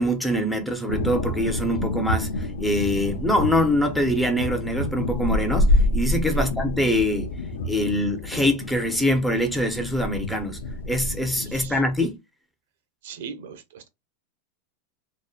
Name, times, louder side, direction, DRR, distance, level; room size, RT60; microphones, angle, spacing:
voice 1, 0.0-7.3 7.7-10.6 10.9-12.2, left 1 dB, 5° left, 0.4 m, -24 dB
sound 1, 0.9-11.8, left 1 dB, 85° left, 0.4 m, -27 dB
voice 2, 11.4-11.8 13.0-13.9, right 6 dB, 70° right, 0.5 m, -39 dB
2.6 x 2.0 x 2.3 m
supercardioid pair, 165°, 0 cm